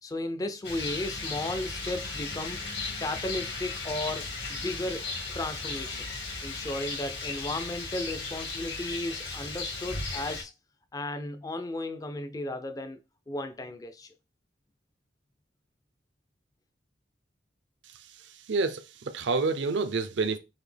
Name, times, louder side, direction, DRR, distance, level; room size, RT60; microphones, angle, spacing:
voice 1, 0.0-2.6 3.0-5.1 5.3-6.1 6.4-10.5 10.9-13.0 13.3-14.1, left 1 dB, 20° left, 0.3 m, -35 dB
Rain, 0.6-10.4, left 3 dB, 65° left, 1.2 m, -36 dB
voice 2, 17.8-20.4, right 4 dB, 75° right, 0.5 m, -29 dB
4.1 x 2.7 x 3.3 m
head